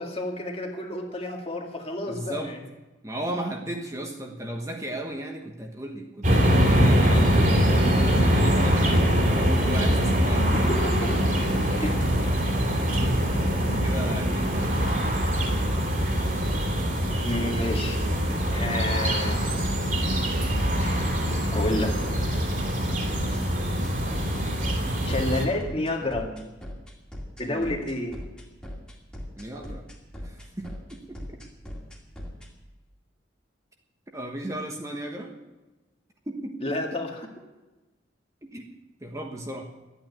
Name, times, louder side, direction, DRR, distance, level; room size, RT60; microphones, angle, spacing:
voice 1, 0.0-2.6 10.5-11.1 11.7-12.0 17.2-18.0 18.5-19.4 20.8-21.0 21.5-22.0 25.0-26.3 27.4-28.2 36.6-37.3, left 1 dB, 30° left, 2 dB, 2.0 m, -30 dB
voice 2, 2.1-2.5 3.0-10.9 11.8-11.9 12.7-13.5 13.7-14.8 26.0-26.5 27.4-27.7 29.4-29.8 30.2-31.2 34.1-35.3 36.3-37.0 38.4-38.6 39.0-39.6, right 1 dB, 15° right, 2 dB, 1.3 m, -35 dB
sound 1, 6.2-25.5, equal, 45° right, 2.9 m, -23 dB
sound 2, 16.5-32.5, equal, 5° left, 2.3 m, -39 dB
13.0 x 9.2 x 9.5 m, 1.1 s
head